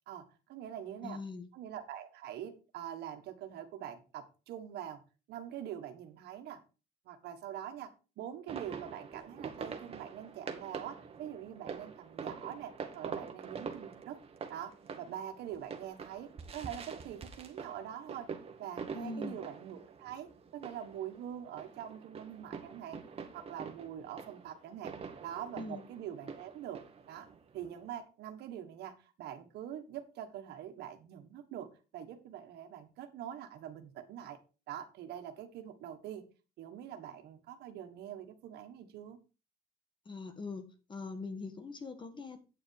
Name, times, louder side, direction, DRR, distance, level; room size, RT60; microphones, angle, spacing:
voice 1, 0.1-1.2 1.5-5.0 5.3-6.6 7.0-14.2 14.5-18.3 18.6-23.0 23.3-25.0 25.2-26.8 27.1-27.3 27.5-34.4 34.7-36.2 36.6-39.2, right 10 dB, 75° right, 1.6 m, -44 dB
voice 2, 1.0-1.5 18.9-19.4 25.5-25.8 40.0-40.6 40.9-42.4, left 3 dB, 30° left, 1.6 m, -42 dB
sound 1, 8.5-27.9, right 5 dB, 35° right, 1.6 m, -46 dB
9.2 x 6.5 x 4.8 m
cardioid pair, 110°, 17 cm